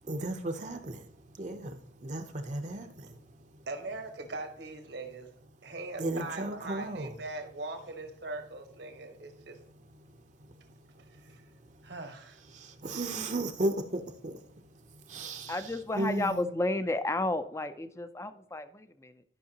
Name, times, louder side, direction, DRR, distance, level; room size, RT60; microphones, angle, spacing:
voice 1, 0.1-1.0 1.4-3.1 6.0-7.1 12.5-14.4 15.1-15.5 16.0-16.4, right 1 dB, 40° right, 5 dB, 0.7 m, -34 dB
voice 2, 3.7-5.3 5.6-9.6 11.2-11.4 11.8-12.4, right 2 dB, 75° right, 5 dB, 1.3 m, -41 dB
voice 3, 15.5-19.2, left 2 dB, 15° left, 11 dB, 0.4 m, -32 dB
12.0 x 5.6 x 2.9 m, 0.65 s
head